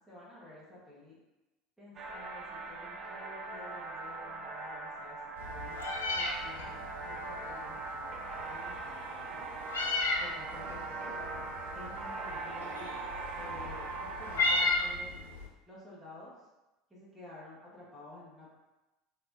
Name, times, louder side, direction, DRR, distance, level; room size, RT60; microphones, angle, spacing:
voice 1, 0.1-1.2 1.8-5.2 5.5-5.8 6.1-8.1 8.5-9.4 10.2-11.1 11.7-12.9 13.3-15.1 15.7-16.3 16.9-18.6, left 2 dB, 5° right, -9 dB, 1.0 m, -51 dB
sound 1, 2.0-14.7, right 3 dB, 40° right, 0.4 m, -41 dB
Meow, 5.4-15.5, left 3 dB, 70° left, 0.4 m, -35 dB
3.4 x 2.4 x 2.5 m, 1.0 s
figure-of-eight pair, 70°, 0 cm